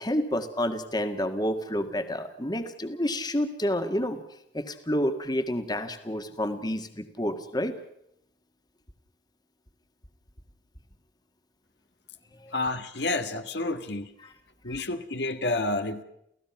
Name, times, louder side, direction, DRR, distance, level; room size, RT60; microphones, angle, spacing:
voice 1, 0.0-4.2 4.5-7.7 12.4-12.5 14.7-14.8, equal, 25° left, 8 dB, 1.8 m, -29 dB
voice 2, 12.5-14.1 14.6-16.0, left 2 dB, 70° left, 8 dB, 1.5 m, -29 dB
29.5 x 16.0 x 5.9 m, 0.77 s
head